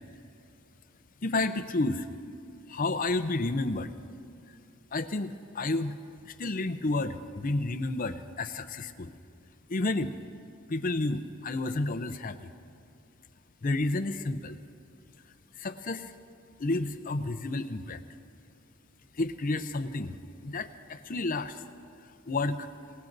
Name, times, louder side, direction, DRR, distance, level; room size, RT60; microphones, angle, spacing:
voice 1, 1.2-2.1 2.7-3.9 4.9-6.0 6.3-9.1 9.7-10.1 10.7-12.5 13.6-14.6 15.6-16.1 16.6-18.0 19.2-20.2 20.4-21.6 22.3-22.7, left 2 dB, 40° left, 10 dB, 0.6 m, -31 dB
25.5 x 18.0 x 2.7 m, 2.4 s
head